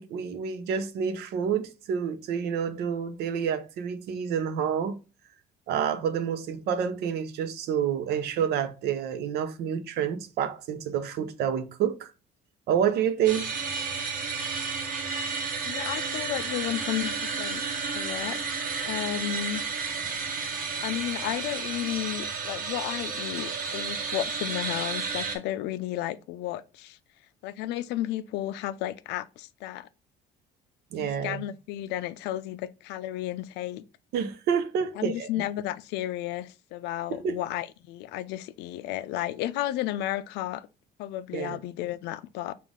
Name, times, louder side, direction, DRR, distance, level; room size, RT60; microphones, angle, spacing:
voice 1, 0.0-5.0 5.7-12.1 12.7-13.5 30.9-31.4 34.1-35.3 37.1-37.4 41.3-41.6, right 8 dB, 75° right, 0.7 m, -28 dB
sound 1, 13.3-25.4, right 5 dB, 55° right, 1.2 m, -32 dB
voice 2, 15.6-18.4 18.9-19.7 20.4-27.0 27.4-29.9 30.9-33.8 34.9-40.7 41.0-42.5, left 13 dB, 90° left, 0.4 m, -33 dB
5.2 x 2.5 x 3.6 m
cardioid pair, 110°, 17 cm